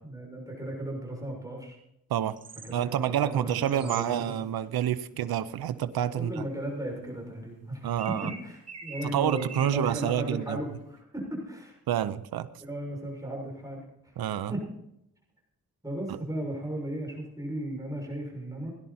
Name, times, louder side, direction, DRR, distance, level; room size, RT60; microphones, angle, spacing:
voice 1, 0.0-1.8 2.6-4.3 6.2-11.8 12.6-14.1 14.5-14.6 15.8-18.7, right 1 dB, 10° right, -1 dB, 6.4 m, -36 dB
sound 1, 2.4-2.7 3.5-4.1 7.7-7.8 8.0-10.5 11.0-11.1, right 4 dB, 45° right, 2.1 m, -44 dB
voice 2, 2.7-6.4 7.8-8.3 9.1-10.6 11.9-12.5 14.2-14.5 16.1-16.2, right 10 dB, 80° right, 13 dB, 0.7 m, -28 dB
17.5 x 10.5 x 4.2 m, 0.80 s
cardioid pair, 80°, 36 cm